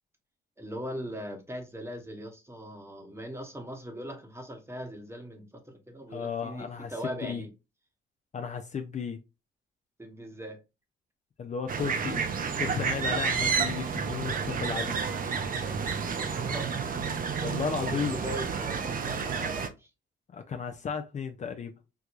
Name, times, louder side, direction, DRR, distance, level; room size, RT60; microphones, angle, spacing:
voice 1, 0.6-7.5 10.0-10.6 16.2-17.1 18.1-19.7, equal, 15° right, 1.0 m, -40 dB
voice 2, 6.1-7.4 8.3-9.2 11.4-12.2 12.6-15.0 17.4-18.2 20.3-21.7, left 6 dB, 35° left, 0.5 m, -34 dB
sound 1, 11.7-19.7, right 6 dB, 45° right, 0.6 m, -30 dB
4.5 x 2.2 x 2.4 m
cardioid pair, 90°, 20 cm